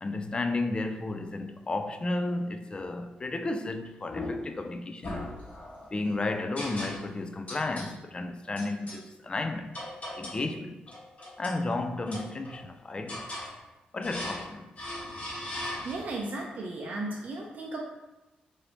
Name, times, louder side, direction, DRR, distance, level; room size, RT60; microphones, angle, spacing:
voice 1, 0.0-5.3 5.9-9.8 10.2-10.8 11.4-13.3 13.9-14.7, left 2 dB, 30° left, 0.3 m, -33 dB
sound 1, 4.1-4.6 5.0-5.9 6.6-7.2 7.5-7.9 8.6-9.0 9.7-10.5 10.9-11.6 12.1-12.7 13.1-13.5 14.0-14.5 14.8-16.2, left 1 dB, 50° left, 1.0 m, -38 dB
voice 2, 15.8-17.8, right 2 dB, 55° right, 0.5 m, -35 dB
2.8 x 2.6 x 3.1 m
cardioid pair, 65°, 3 cm